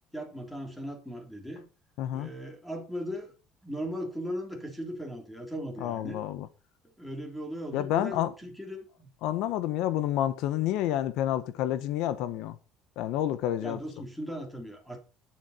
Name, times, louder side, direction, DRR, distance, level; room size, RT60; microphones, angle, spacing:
voice 1, 0.1-1.6 2.1-3.3 3.6-6.2 7.0-9.1 13.6-15.0, equal, 5° left, 3.4 m, -38 dB
voice 2, 2.0-2.3 5.8-6.5 7.7-8.3 9.2-12.6 13.0-13.8, left 12 dB, 70° left, 1.3 m, -29 dB
12.0 x 11.0 x 4.4 m
cardioid pair, 160°, 0 cm